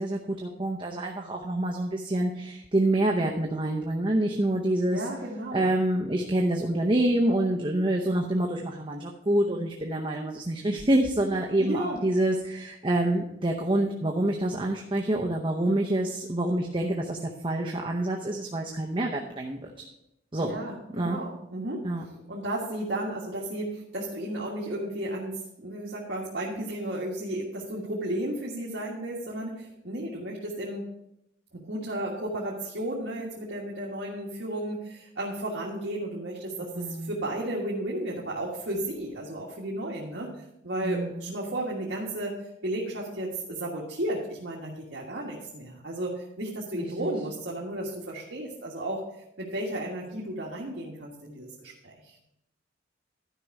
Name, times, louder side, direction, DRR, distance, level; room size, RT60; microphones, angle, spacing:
voice 1, 0.0-5.0 5.5-19.8 20.3-20.6 20.9-21.2 21.8-22.0 36.7-37.1 40.8-41.3 47.0-47.1, right 1 dB, 25° right, 0 dB, 0.7 m, -27 dB
voice 2, 4.9-5.7 11.6-12.0 20.4-30.8 31.5-40.3 40.6-49.0 49.4-52.2, right 1 dB, 70° right, -4 dB, 1.6 m, -33 dB
12.0 x 5.3 x 4.7 m, 0.83 s
head